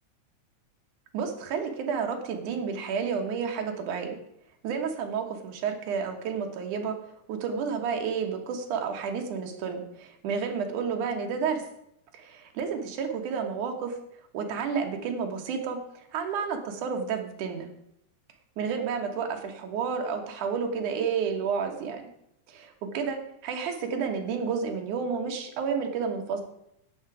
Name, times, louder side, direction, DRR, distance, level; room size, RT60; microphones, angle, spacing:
voice 1, 1.1-4.2 4.6-7.0 7.3-11.6 12.1-14.0 14.3-15.8 16.1-17.7 18.6-22.0 22.5-26.4, right 6 dB, 85° right, 4 dB, 2.8 m, -31 dB
11.5 x 8.9 x 4.8 m, 0.78 s
omnidirectional pair, 3.5 m